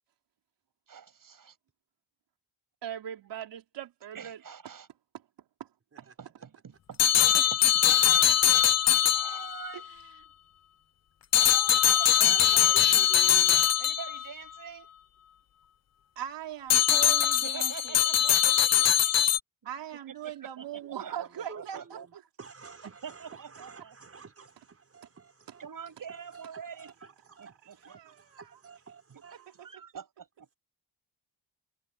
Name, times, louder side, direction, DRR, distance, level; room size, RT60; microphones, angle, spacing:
voice 1, 0.9-1.6 4.1-4.9 6.0-7.9 9.0-9.9 11.3-13.0 13.8-14.9 17.2-19.1 19.6-19.7 20.1-22.1 22.8-24.0 25.6-26.9 27.4-28.0 29.1-29.2 29.5-30.6, right 7 dB, 50° right, 7.6 m, -45 dB
voice 2, 2.8-4.4 5.6-5.7 6.0-6.1 7.4-7.5 9.7-10.0 16.2-18.0 19.6-22.2 27.6-28.6, right 10 dB, 80° right, 4.7 m, -40 dB
sound 1, 7.0-9.8 11.3-14.3 16.7-19.4, left 9 dB, 40° left, 0.6 m, -22 dB
voice 3, 12.3-13.6 20.8-22.1 22.4-25.7 26.1-29.7, right 5 dB, 35° right, 5.9 m, -50 dB
cardioid pair, 95°, 42 cm